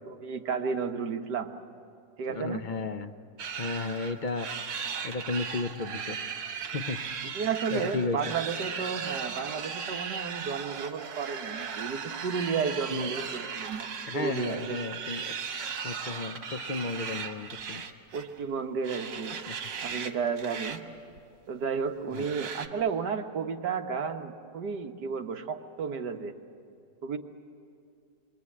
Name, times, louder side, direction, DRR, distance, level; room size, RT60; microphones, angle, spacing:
voice 1, 0.1-1.5 2.2-2.6 7.3-13.9 14.1-14.8 18.1-19.4 19.8-20.8 21.5-26.3 27.0-27.2, right 6 dB, 70° right, 5 dB, 1.8 m, -32 dB
voice 2, 2.3-3.1 3.6-4.5 5.0-6.2 6.6-7.0 7.7-8.3 12.9-13.1 14.1-15.2 15.8-17.8 19.5-19.6 19.9-20.0 22.1-22.3, left 3 dB, 45° left, 8 dB, 0.6 m, -33 dB
sound 1, 3.4-18.4 18.8-20.1 20.4-20.8 21.1-21.2 22.1-22.7, right 6 dB, 85° right, 2.0 m, -37 dB
28.5 x 24.0 x 8.5 m, 2.5 s
omnidirectional pair, 1.9 m